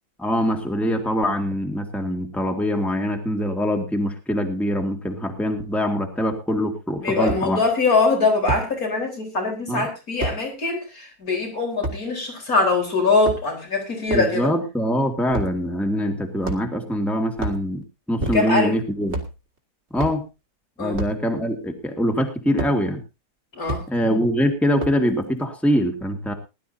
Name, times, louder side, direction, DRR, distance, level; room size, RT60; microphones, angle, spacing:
voice 1, 0.2-7.6 9.7-9.9 14.1-17.8 18.1-19.2 19.9-20.2 20.8-23.0 23.9-26.3, equal, ahead, 4 dB, 2.0 m, -23 dB
sound 1, 6.3-6.4 7.3-7.4 8.5-8.7 10.2-10.4 11.8-12.0 13.1-13.6 14.1-14.3 15.3-15.6 16.4-16.8 17.3-17.6 18.2-18.7 19.1-19.3 20.0-20.2 20.9-21.2 22.6-22.7 23.7-23.8 24.8-25.1, right 2 dB, 45° right, 2.7 m, -28 dB
voice 2, 7.0-14.5 18.2-18.8 20.8-21.0 23.5-23.9, left 3 dB, 65° left, 2 dB, 4.7 m, -22 dB
21.0 x 12.0 x 2.7 m, 0.28 s
omnidirectional pair, 1.6 m